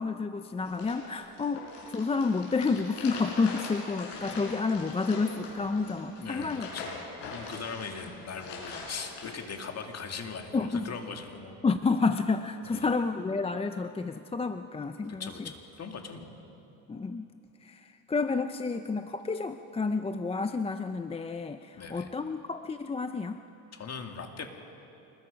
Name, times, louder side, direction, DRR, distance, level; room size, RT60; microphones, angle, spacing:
voice 1, 0.0-6.7 10.5-10.8 11.6-15.3 16.9-17.3 17.6-23.4, left 4 dB, 15° left, 8 dB, 0.5 m, -30 dB
sound 1, 0.7-9.3, left 4 dB, 85° left, 5.5 m, -42 dB
voice 2, 6.2-11.6 12.6-12.9 15.2-16.4 21.7-22.1 23.7-24.5, left 5 dB, 40° left, 4 dB, 2.2 m, -40 dB
26.5 x 21.0 x 5.2 m, 2.8 s
cardioid pair, 120°, 41 cm